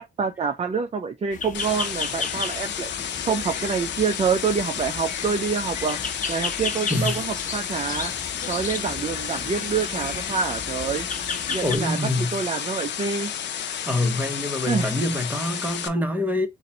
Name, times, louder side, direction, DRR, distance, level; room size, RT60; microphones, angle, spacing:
voice 1, 0.0-2.9 3.2-8.1 8.5-11.1 11.5-13.3 14.7-14.9, right 5 dB, 30° right, 0.5 m, -27 dB
sound 1, 1.3-11.8, left 4 dB, 40° left, 1.2 m, -34 dB
sound 2, 1.5-15.9, left 9 dB, 65° left, 0.7 m, -31 dB
voice 2, 6.9-7.2 11.6-12.4 13.7-16.5, left 1 dB, 10° right, 1.3 m, -25 dB
3.9 x 2.6 x 4.1 m
cardioid pair, 90°, 20 cm